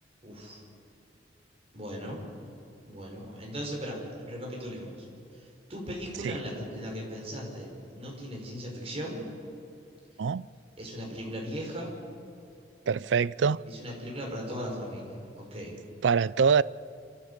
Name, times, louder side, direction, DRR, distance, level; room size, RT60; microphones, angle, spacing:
voice 1, 0.2-0.6 1.7-2.2 2.9-5.1 5.3-9.3 10.8-11.9 13.6-15.7, equal, 35° right, 5.1 m, -38 dB
voice 2, 12.9-13.6 16.0-16.6, right 6 dB, 85° right, 0.4 m, -24 dB
26.0 x 14.0 x 8.1 m
head